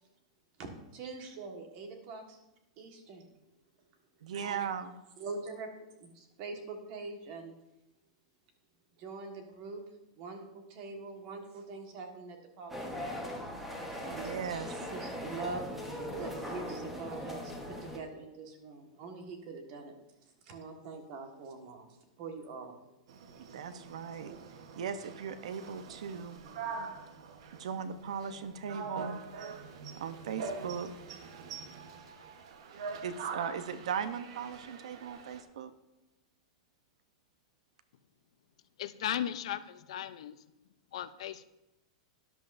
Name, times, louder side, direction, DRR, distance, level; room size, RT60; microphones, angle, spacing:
voice 1, 0.6-2.4 2.8-3.3 4.3-4.6 5.2-5.7 6.0-7.6 9.0-9.8 10.2-13.2 14.0-14.4 14.7-15.7 16.2-20.0 20.4-21.9 22.2-22.8, right 3 dB, 35° right, 4 dB, 1.5 m, -44 dB
voice 2, 4.2-4.9 14.0-14.8 23.5-24.3 24.7-26.4 27.6-29.2 30.0-30.9 33.0-35.7, right 7 dB, 80° right, 11 dB, 0.8 m, -38 dB
sound 1, 12.7-18.0, equal, 5° right, 1.1 m, -40 dB
sound 2, 23.1-35.4, right 5 dB, 60° right, 1.0 m, -44 dB
voice 3, 38.8-40.4 40.9-41.5, left 11 dB, 65° left, 13 dB, 0.5 m, -36 dB
13.0 x 10.5 x 2.6 m, 0.95 s
supercardioid pair, 175°, 3 cm